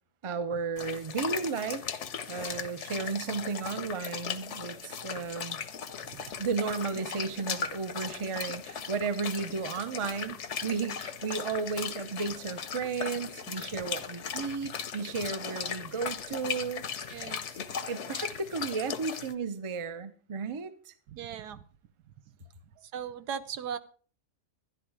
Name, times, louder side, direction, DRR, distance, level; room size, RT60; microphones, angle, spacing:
voice 1, 0.2-1.8 2.3-5.6 6.4-16.8 17.9-20.9, right 5 dB, 30° right, 0.6 m, -34 dB
sound 1, 0.8-19.3, left 7 dB, 55° left, 1.0 m, -38 dB
voice 2, 17.1-17.6 21.1-21.6 22.8-23.8, right 8 dB, 75° right, 1.4 m, -38 dB
11.5 x 11.0 x 4.9 m
omnidirectional pair, 1.7 m